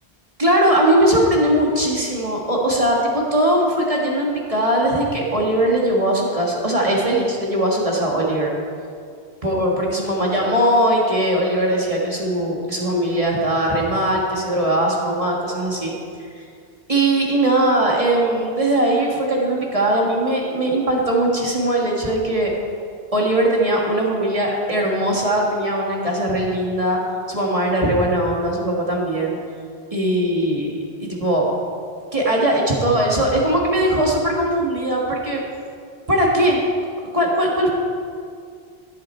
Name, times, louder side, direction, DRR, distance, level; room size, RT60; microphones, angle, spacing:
voice 1, 0.4-8.5 9.4-15.9 16.3-16.4 16.9-22.6 23.1-27.0 27.3-29.4 29.9-31.5 32.1-35.4 36.1-36.6 37.1-37.7, right 1 dB, 30° right, -2 dB, 1.7 m, -20 dB
15.5 x 7.5 x 4.4 m, 2.3 s
omnidirectional pair, 1.1 m